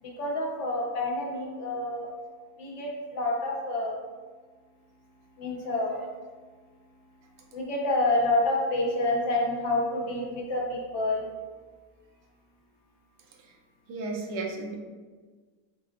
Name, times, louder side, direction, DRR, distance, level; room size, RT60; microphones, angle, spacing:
voice 1, 0.0-2.1 2.6-4.0 5.4-6.0 7.5-11.2, left 2 dB, 55° left, -1 dB, 0.9 m, -28 dB
voice 2, 13.9-14.8, right 3 dB, 75° right, 0 dB, 1.3 m, -33 dB
6.7 x 2.4 x 2.5 m, 1.4 s
omnidirectional pair, 1.9 m